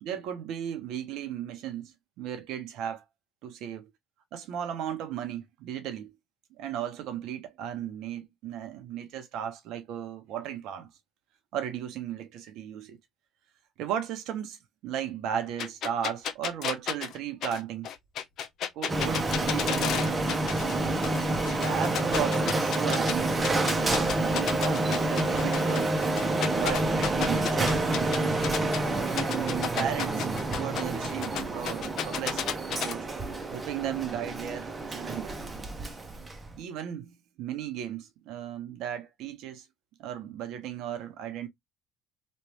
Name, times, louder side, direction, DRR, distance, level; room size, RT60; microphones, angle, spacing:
voice 1, 0.0-3.0 3.4-3.8 4.3-6.2 6.6-10.9 11.5-13.0 13.8-17.9 18.7-20.3 20.7-21.0 21.6-25.9 26.4-28.4 29.3-30.3 30.6-33.1 33.5-35.5 36.6-39.7 40.0-41.5, right 9 dB, 75° right, 1.0 m, -36 dB
sound 1, 15.6-20.8 21.0-23.1 23.4-28.8 29.2-32.9, left 9 dB, 65° left, 0.7 m, -32 dB
Printer, 18.9-36.6, right 2 dB, 25° right, 0.9 m, -28 dB
3.2 x 2.6 x 3.0 m
supercardioid pair, 90°, 0 cm